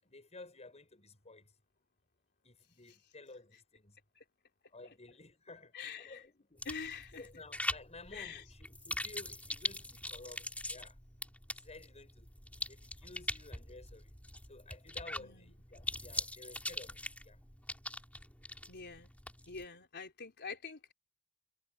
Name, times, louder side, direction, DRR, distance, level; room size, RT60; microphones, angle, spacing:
voice 1, 0.0-1.5 2.4-4.0 4.7-6.7 7.2-11.0 11.5-14.1 14.5-17.4, left 2 dB, 30° left, 6.5 m, -54 dB
voice 2, 5.7-6.2 6.7-7.3 8.1-8.4 15.1-15.5 18.7-19.1 19.5-20.9, left 5 dB, 50° left, 3.9 m, -45 dB
sound 1, 6.6-19.7, left 1 dB, 5° left, 4.4 m, -42 dB
head